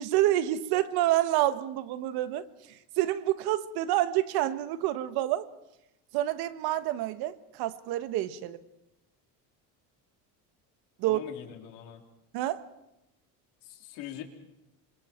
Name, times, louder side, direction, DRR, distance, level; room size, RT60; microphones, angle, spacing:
voice 1, 0.0-5.5 6.1-8.6 11.0-11.2 12.3-12.6, right 14 dB, 70° right, 12 dB, 1.4 m, -28 dB
voice 2, 11.0-12.0 13.6-14.2, left 11 dB, 90° left, 3 dB, 3.8 m, -43 dB
27.5 x 25.5 x 4.5 m, 0.89 s
cardioid pair, 165°, 40 cm